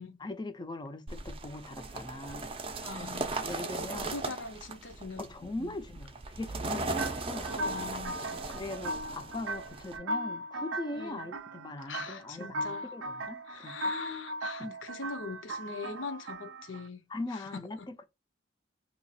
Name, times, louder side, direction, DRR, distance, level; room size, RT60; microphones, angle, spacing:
voice 1, 0.2-2.5 3.0-4.2 5.2-7.5 8.3-13.9 14.6-14.8 17.1-18.1, left 2 dB, 25° left, 0.5 m, -41 dB
sound 1, 1.1-10.0, right 3 dB, 30° right, 0.5 m, -38 dB
voice 2, 2.8-5.3 5.6-5.7 6.6-7.1 7.5-8.2 10.9-11.3 11.9-12.9 13.5-17.0 17.3-17.9, left 4 dB, 75° left, 0.8 m, -42 dB
sound 2, 7.0-16.9, right 1 dB, 80° right, 0.4 m, -38 dB
2.8 x 2.4 x 4.1 m
head